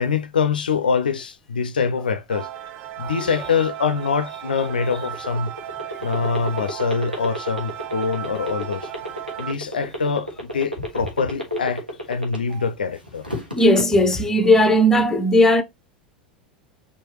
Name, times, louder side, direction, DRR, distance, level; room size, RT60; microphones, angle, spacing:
voice 1, 0.0-2.5 3.0-5.5 6.0-8.9 9.4-11.8 12.1-13.3, left 5 dB, 70° left, 0.4 m, -24 dB
sound 1, 2.3-9.5, right 11 dB, 45° right, 0.4 m, -35 dB
sound 2, 4.5-12.7 13.1-13.8, equal, 90° right, 1.1 m, -30 dB
voice 2, 13.5-15.6, left 1 dB, 10° left, 0.6 m, -16 dB
4.6 x 2.6 x 2.9 m
figure-of-eight pair, 85°, 5 cm